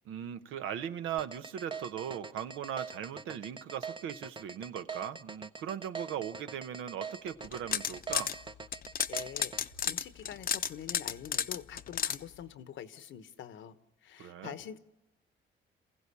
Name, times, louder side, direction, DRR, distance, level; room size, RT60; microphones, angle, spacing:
voice 1, 0.1-8.3 14.2-14.6, right 9 dB, 85° right, 1.1 m, -39 dB
sound 1, 1.2-9.6, right 5 dB, 25° right, 0.7 m, -42 dB
sound 2, 7.4-8.3 8.7-12.2, left 8 dB, 45° left, 0.8 m, -32 dB
voice 2, 9.1-13.8 14.0-14.8, left 9 dB, 75° left, 1.2 m, -45 dB
28.0 x 15.5 x 8.5 m
cardioid pair, 90°, 20 cm